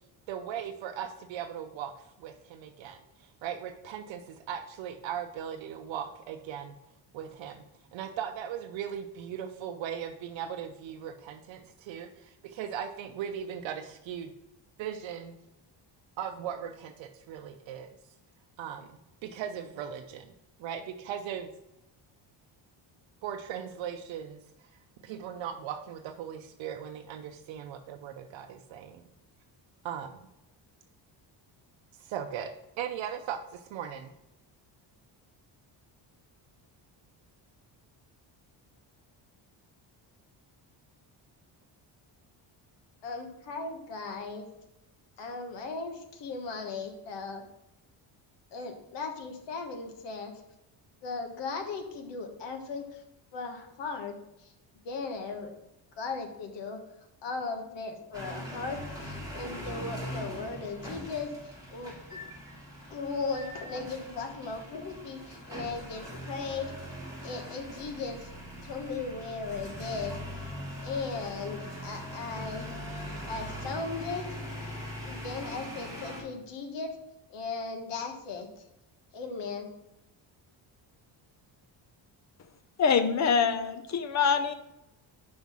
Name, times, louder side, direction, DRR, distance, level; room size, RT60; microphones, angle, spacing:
voice 1, 0.3-1.9 2.2-6.8 7.1-7.6 7.9-14.3 14.8-15.3 16.2-18.0 18.6-18.9 19.2-20.3 20.6-21.5 23.2-24.4 25.0-29.0 29.8-30.3 32.0-34.1, right 9 dB, 80° right, 6 dB, 0.7 m, -38 dB
voice 2, 43.0-44.4 45.2-47.4 48.5-50.3 51.0-53.0 53.3-54.1 54.4-54.5 54.8-55.5 56.0-56.8 57.2-61.3 61.7-62.2 62.9-66.7 67.2-68.3 68.6-70.2 70.8-72.7 73.2-74.2 75.0-77.0 77.3-78.5 79.1-79.7, left 4 dB, 65° left, 4 dB, 1.3 m, -37 dB
sound 1, 58.1-76.2, equal, 10° right, 3.0 m, -41 dB
voice 3, 82.8-84.5, left 6 dB, 40° left, 9 dB, 0.6 m, -25 dB
5.4 x 5.2 x 6.0 m, 0.90 s
cardioid pair, 160°, 45 cm